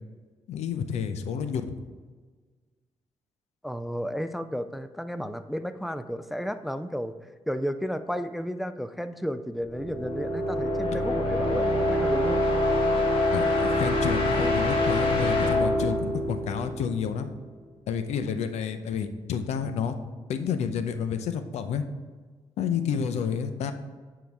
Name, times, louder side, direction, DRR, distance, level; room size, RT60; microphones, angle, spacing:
voice 1, 0.5-1.7 13.3-17.3 17.9-19.9 20.3-21.8 22.6-23.7, left 7 dB, 85° left, 9 dB, 0.6 m, -30 dB
voice 2, 3.6-7.1 7.5-12.4, equal, ahead, 11 dB, 0.4 m, -33 dB
sound 1, 9.6-17.3, left 1 dB, 50° left, 2.2 m, -25 dB
9.4 x 3.8 x 4.7 m, 1.5 s
cardioid pair, 85°, 11 cm